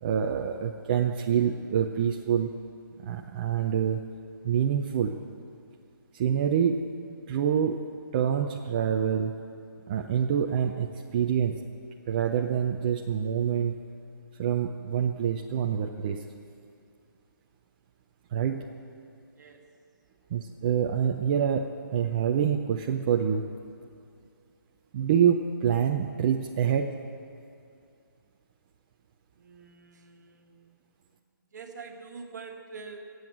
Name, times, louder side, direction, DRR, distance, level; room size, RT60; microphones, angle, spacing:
voice 1, 0.0-2.5 3.0-4.0 4.4-5.2 6.1-6.9 7.3-7.8 8.1-9.4 9.9-11.6 12.1-13.8 14.4-16.2 18.3-18.7 20.3-23.5 24.9-26.9, right 8 dB, 25° right, 3 dB, 0.5 m, -26 dB
voice 2, 29.4-30.7 31.5-33.1, right 4 dB, 55° right, 4 dB, 1.6 m, -45 dB
16.5 x 7.9 x 7.8 m, 2.4 s
hypercardioid pair, 160°, 12 cm